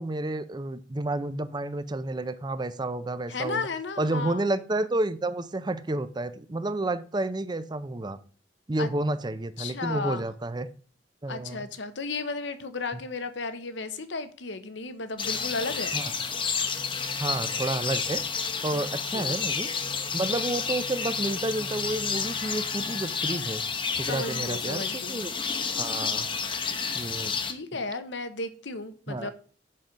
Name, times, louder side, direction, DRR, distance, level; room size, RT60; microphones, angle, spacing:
voice 1, 0.0-3.7 4.0-8.2 8.7-10.7 11.2-11.6 15.9-16.1 17.2-18.2 18.6-19.7 20.1-23.6 24.0-25.3 25.8-26.3 26.9-27.3 27.7-27.8 29.1-29.3, right 2 dB, 25° right, 0.5 m, -30 dB
voice 2, 3.3-4.4 8.8-8.9 9.6-10.3 11.2-15.9 17.4-17.6 18.7-18.8 19.1-19.4 24.0-25.2 27.5-29.3, left 3 dB, 90° left, 1.0 m, -34 dB
sound 1, 15.2-27.5, left 5 dB, 30° left, 0.9 m, -30 dB
7.6 x 6.0 x 5.1 m
head